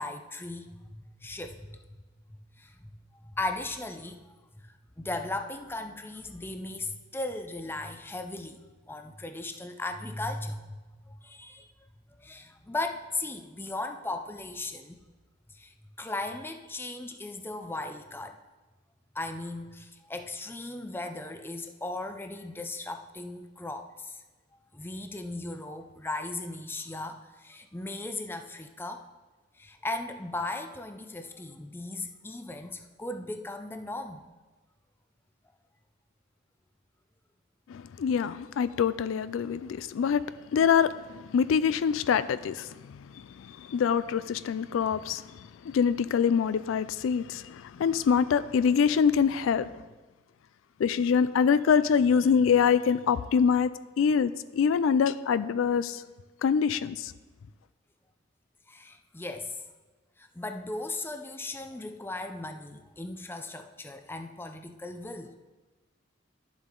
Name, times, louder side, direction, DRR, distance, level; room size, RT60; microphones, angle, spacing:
voice 1, 0.0-1.7 2.3-8.6 8.9-11.7 12.2-15.0 15.5-18.4 19.1-24.2 24.5-29.1 29.5-34.2 58.7-59.6 60.2-65.4, left 2 dB, 10° left, 7 dB, 0.5 m, -37 dB
voice 2, 37.7-40.2 40.5-45.2 45.6-49.7 50.8-53.7 54.0-56.0 56.4-57.1, left 7 dB, 70° left, 15 dB, 0.3 m, -25 dB
11.0 x 7.1 x 3.8 m, 1.2 s
head